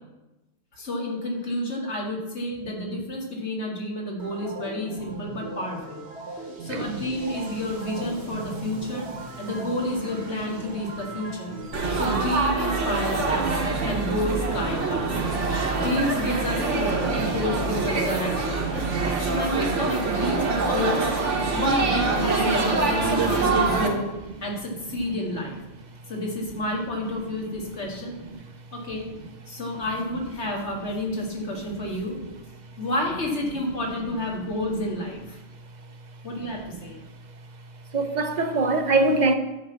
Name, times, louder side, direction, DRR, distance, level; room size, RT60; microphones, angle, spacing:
voice 1, 0.7-6.0 6.6-9.1 9.4-11.5 11.9-15.2 15.7-18.6 19.2-24.1 24.4-25.6 26.1-28.2 28.7-29.1 29.5-32.2 32.8-35.4 36.2-37.0, left 1 dB, 65° left, 2.1 m, -30 dB
sound 1, 4.2-20.2, right 3 dB, 65° right, 1.4 m, -37 dB
Laughter / Chatter / Crowd, 11.7-23.9, right 3 dB, 80° right, 1.6 m, -25 dB
voice 2, 37.9-39.3, right 3 dB, 45° right, 0.7 m, -22 dB
9.7 x 4.5 x 7.3 m
omnidirectional pair, 1.2 m